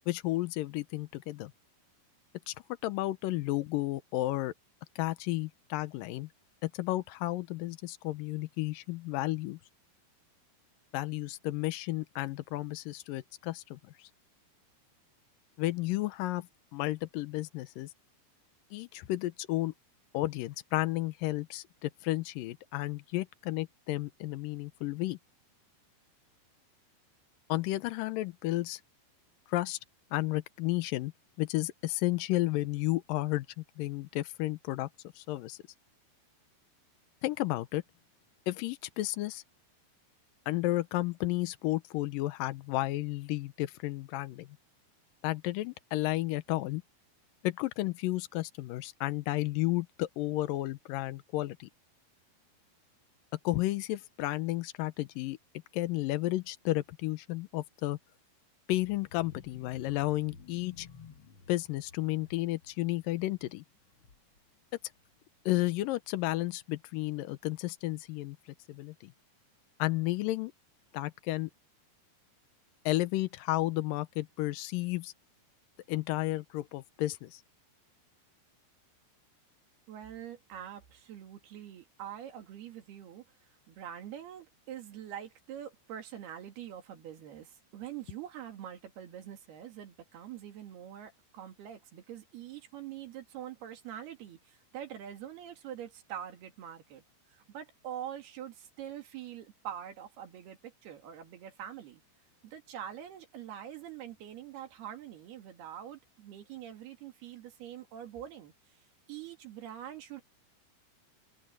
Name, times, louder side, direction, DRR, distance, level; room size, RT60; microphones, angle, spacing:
voice 1, 0.1-1.5 2.5-2.6 2.8-4.5 5.0-6.3 6.6-9.6 10.9-14.1 15.6-16.5 16.7-17.9 18.7-19.7 20.1-25.2 27.5-28.8 29.5-29.8 30.1-31.1 31.4-34.9 35.2-35.6 37.2-37.8 38.5-39.4 40.5-44.5 45.2-46.8 47.4-51.7 53.4-55.4 55.7-58.0 58.7-60.9 61.5-63.6 65.5-68.4 68.7-69.1 69.8-70.5 70.9-71.5 72.9-75.1 75.9-77.4, left 17 dB, 90° left, 1.9 m, -32 dB
sound 1, 58.7-64.5 64.9-65.1 65.5-65.6, left 5 dB, 60° left, 1.3 m, -54 dB
voice 2, 79.9-83.3 83.7-97.0 97.3-102.0 102.4-108.5 109.1-110.2, right 10 dB, 65° right, 4.1 m, -44 dB
open air
omnidirectional pair, 5.0 m